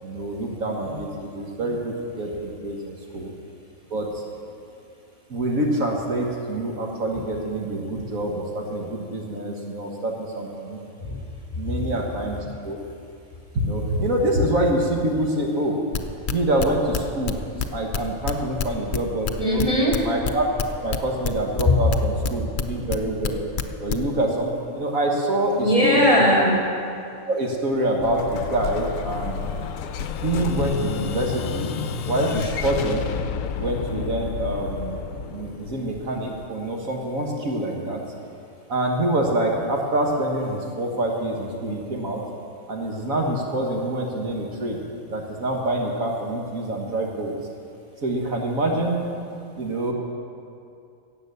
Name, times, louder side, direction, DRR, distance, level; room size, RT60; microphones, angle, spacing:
voice 1, 0.0-3.3 3.9-4.2 5.3-10.8 11.5-12.8 13.5-15.8 16.3-17.4 17.7-19.6 20.0-20.5 20.8-23.4 23.8-26.2 27.3-29.5 30.2-31.7 32.1-33.1 33.6-35.0 35.3-38.0 38.7-42.2 42.7-44.8 45.1-47.3 48.0-49.1 49.6-49.9, right 1 dB, 65° right, 0 dB, 1.8 m, -26 dB
sound 1, 15.9-21.6 21.9-23.3 23.6-24.0, left 7 dB, 50° left, 0.6 m, -26 dB
voice 2, 19.4-20.0 21.6-21.7 25.6-26.6, left 1 dB, 20° left, -4 dB, 3.1 m, -19 dB
Explosion, 28.0-36.7, left 7 dB, 70° left, 1.0 m, -30 dB
16.5 x 8.3 x 6.9 m, 2.5 s
omnidirectional pair, 1.5 m